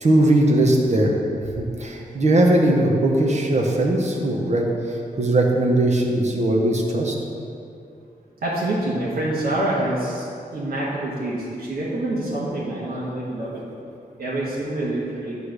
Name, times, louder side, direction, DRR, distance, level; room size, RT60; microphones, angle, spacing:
voice 1, 0.0-1.1 1.6-7.1, right 1 dB, 50° right, 0 dB, 1.0 m, -19 dB
voice 2, 8.4-10.2 10.5-13.6 14.2-15.4, right 1 dB, 80° right, -8 dB, 1.4 m, -26 dB
9.5 x 3.3 x 6.4 m, 2.6 s
wide cardioid pair, 110°, 15 cm